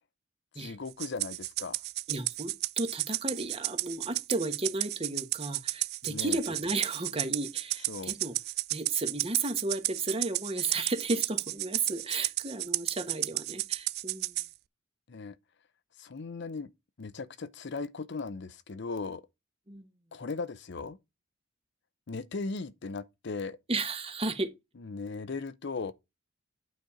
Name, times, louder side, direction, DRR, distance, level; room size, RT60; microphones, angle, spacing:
voice 1, 0.6-1.8 6.0-6.4 7.9-8.1 15.1-15.4 16.0-16.7 17.0-19.2 20.1-21.0 22.1-23.6 24.8-25.9, left 4 dB, 60° left, 0.6 m, -37 dB
Rattle (instrument), 1.0-14.5, right 18 dB, 55° right, 0.3 m, -33 dB
voice 2, 2.1-8.4 8.7-14.4 19.7-19.9 23.7-24.5, right 3 dB, 30° right, 1.2 m, -33 dB
9.3 x 4.3 x 4.9 m
head